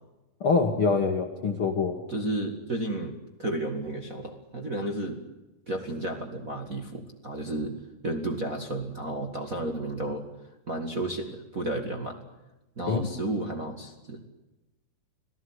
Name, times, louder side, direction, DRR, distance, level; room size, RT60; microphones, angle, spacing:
voice 1, 0.4-2.0 12.9-13.1, left 4 dB, 45° left, 5 dB, 2.0 m, -25 dB
voice 2, 2.1-5.2 5.7-7.8 8.0-10.3 10.7-12.2 12.8-14.3, right 1 dB, 30° right, 2 dB, 1.8 m, -32 dB
26.5 x 17.0 x 9.8 m, 1.0 s
omnidirectional pair, 4.3 m